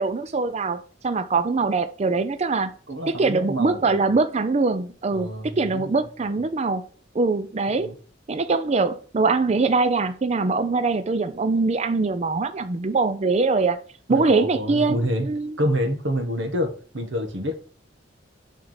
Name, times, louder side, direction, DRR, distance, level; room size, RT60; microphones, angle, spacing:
voice 1, 0.0-2.7 3.1-6.8 7.1-7.9 8.3-13.8 14.1-15.0 15.2-15.6, right 3 dB, 35° right, 0.4 m, -23 dB
voice 2, 2.9-4.1 5.1-6.1 7.8-7.9 14.1-15.3 15.6-17.5, equal, 80° right, 1.4 m, -27 dB
7.8 x 3.7 x 5.6 m
head